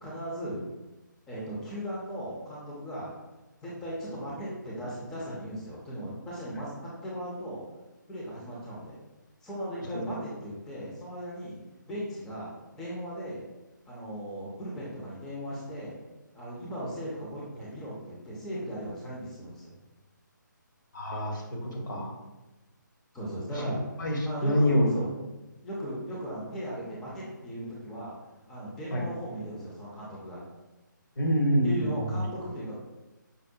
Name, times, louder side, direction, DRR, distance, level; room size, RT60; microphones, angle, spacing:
voice 1, 0.0-0.6 1.3-3.1 3.6-7.6 8.1-9.0 9.4-11.6 11.9-12.5 12.8-13.4 13.9-15.9 16.3-19.7 23.1-23.8 24.2-25.1 25.6-28.1 28.5-30.4 31.6-32.7, equal, 5° left, -6 dB, 0.3 m, -37 dB
voice 2, 20.9-21.4 21.7-22.1 24.0-24.9 28.9-29.0 31.2-32.1, equal, 70° left, 0 dB, 1.0 m, -26 dB
5.2 x 2.0 x 2.6 m, 1.1 s
figure-of-eight pair, 150°, 11 cm